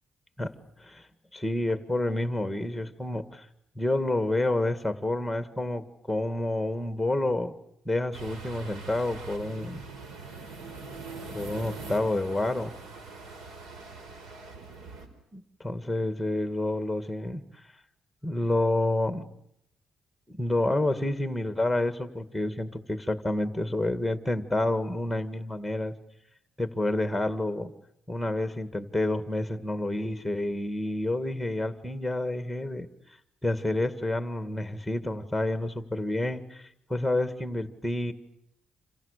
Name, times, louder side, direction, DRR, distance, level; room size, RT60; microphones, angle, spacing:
voice 1, 0.4-1.1 1.3-3.4 3.8-7.5 7.9-9.8 11.3-12.8 15.3-17.4 18.2-19.3 20.3-25.9 26.6-27.7 28.1-32.9 33.4-38.1, left 1 dB, ahead, 10 dB, 2.2 m, -29 dB
sound 1, 8.1-15.1, right 4 dB, 75° right, 4.7 m, -42 dB
29.0 x 27.5 x 6.8 m, 0.78 s
cardioid pair, 90°, 0 cm